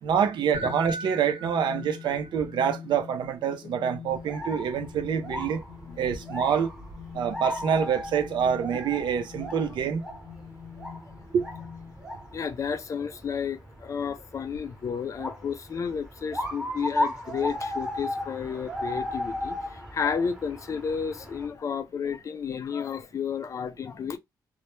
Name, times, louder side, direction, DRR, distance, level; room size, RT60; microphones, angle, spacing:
voice 1, 0.0-5.6 6.0-6.7 7.1-10.0 11.3-11.4, right 7 dB, 75° right, 0.4 m, -26 dB
sound 1, 0.5-12.3, left 4 dB, 75° left, 0.8 m, -42 dB
sound 2, 4.1-21.5, left 1 dB, 5° right, 0.7 m, -36 dB
voice 2, 12.3-24.2, left 6 dB, 40° left, 0.4 m, -32 dB
2.1 x 2.1 x 2.9 m
cardioid pair, 125°, 8 cm